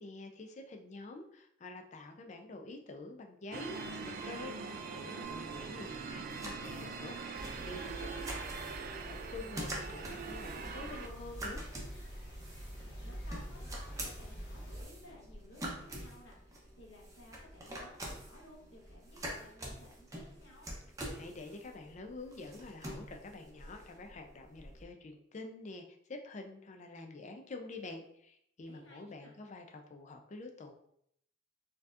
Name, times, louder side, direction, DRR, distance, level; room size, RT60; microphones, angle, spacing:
voice 1, 0.0-8.1 8.8-11.6 21.1-25.8 26.1-30.7, left 2 dB, 40° left, 4 dB, 0.4 m, -47 dB
sound 1, 3.5-11.1, right 5 dB, 50° right, 0.3 m, -43 dB
sound 2, 5.2-24.8, right 1 dB, 15° right, 0.7 m, -47 dB
sound 3, 7.3-14.8, equal, 60° left, 1.1 m, -46 dB
voice 2, 8.0-8.5 12.8-20.7 28.7-29.3, left 1 dB, 85° left, -2 dB, 1.0 m, -56 dB
4.3 x 2.8 x 2.4 m, 0.71 s
head